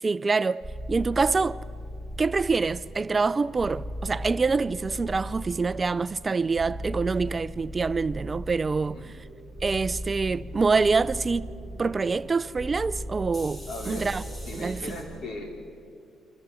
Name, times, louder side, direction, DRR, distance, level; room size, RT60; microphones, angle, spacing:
voice 1, 0.0-1.6 2.2-9.0 9.6-11.5 11.8-14.2 14.6-14.8, right 4 dB, 30° right, 0.4 m, -26 dB
sound 1, 0.6-15.0, equal, 25° left, 5.3 m, -38 dB
voice 2, 13.7-14.1 14.5-15.7, left 2 dB, 70° left, 4.0 m, -37 dB
26.0 x 14.5 x 8.1 m
cardioid pair, 90°, 0 cm